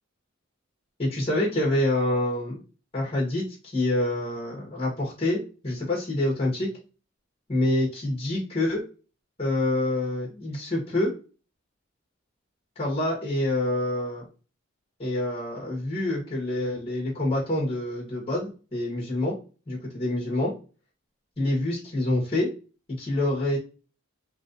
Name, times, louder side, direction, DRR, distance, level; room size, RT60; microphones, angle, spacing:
voice 1, 1.0-2.6 2.9-6.7 7.5-8.8 9.4-11.1 12.8-14.2 15.0-19.3 19.7-20.5 21.4-22.5 23.0-23.6, left 1 dB, 25° left, -3 dB, 1.1 m, -26 dB
3.0 x 2.5 x 2.5 m, 0.35 s
head